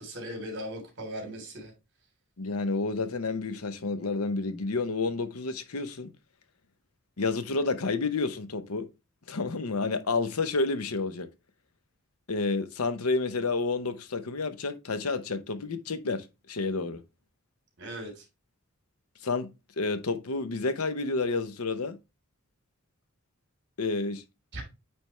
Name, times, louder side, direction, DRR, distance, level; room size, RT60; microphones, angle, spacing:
voice 1, 0.0-1.7 17.8-18.2 24.5-24.6, equal, 55° right, 3.3 m, -38 dB
voice 2, 2.4-6.1 7.2-8.9 9.3-11.3 12.3-17.0 19.2-22.0 23.8-24.2, left 3 dB, 90° left, 0.8 m, -30 dB
8.6 x 3.5 x 3.1 m
head